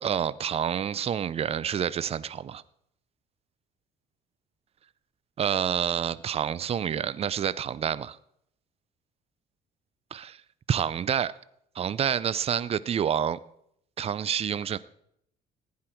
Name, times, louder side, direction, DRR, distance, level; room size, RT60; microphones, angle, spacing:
voice 1, 0.0-2.6 5.4-8.2 10.1-10.4 10.7-11.3 11.8-13.4 14.0-14.8, right 8 dB, 35° right, 18 dB, 0.5 m, -28 dB
15.5 x 9.6 x 4.5 m, 0.73 s
cardioid pair, 110°, 17 cm